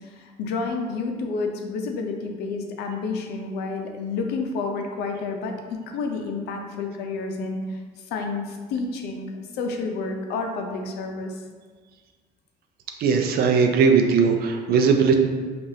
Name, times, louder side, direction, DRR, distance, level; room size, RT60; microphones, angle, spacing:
voice 1, 0.0-7.8 8.1-11.4, left 4 dB, 80° left, 3 dB, 0.5 m, -30 dB
voice 2, 13.0-15.2, right 5 dB, 65° right, 4 dB, 0.5 m, -19 dB
4.7 x 2.5 x 2.7 m, 1.5 s
cardioid pair, 110°, 17 cm